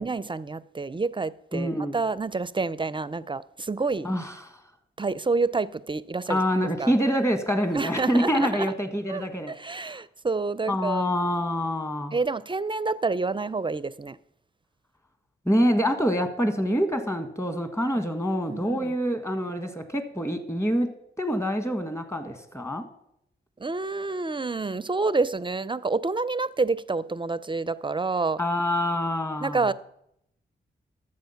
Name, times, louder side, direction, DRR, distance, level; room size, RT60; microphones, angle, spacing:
voice 1, 0.0-4.1 5.0-6.4 6.8-6.9 7.7-8.7 9.1-11.0 12.1-14.2 18.5-18.9 23.6-28.4 29.4-29.7, right 3 dB, 25° right, 0.4 m, -28 dB
voice 2, 1.5-2.0 4.0-4.5 6.3-9.5 10.7-12.2 15.5-20.9 21.2-22.9 28.4-29.6, equal, 15° left, 1.7 m, -26 dB
11.5 x 7.6 x 5.7 m
cardioid pair, 55°, 19 cm